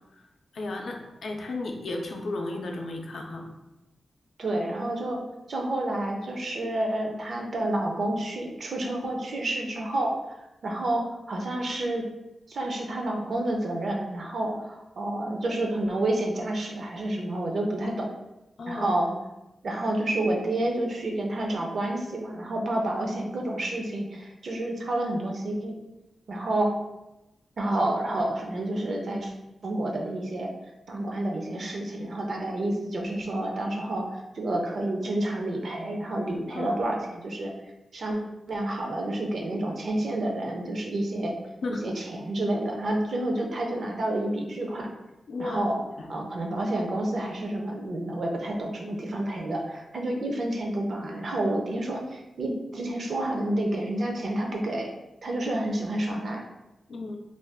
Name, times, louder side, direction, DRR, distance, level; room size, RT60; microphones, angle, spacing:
voice 1, 0.5-3.5 18.6-18.9 36.5-36.8 41.6-41.8 45.3-45.7 46.0-46.1 56.9-57.2, left 2 dB, 70° left, 1 dB, 0.5 m, -34 dB
voice 2, 4.4-5.2 5.5-10.2 10.6-12.1 12.5-18.1 18.7-19.1 19.6-25.7 26.3-26.7 27.6-29.3 29.6-30.5 30.9-34.1 34.3-37.5 37.9-38.2 38.5-41.3 41.7-44.9 45.4-45.8 46.1-54.9 55.2-56.4, right 1 dB, 60° right, 1 dB, 0.5 m, -29 dB
2.5 x 2.3 x 3.4 m, 0.96 s
wide cardioid pair, 115°, 0 cm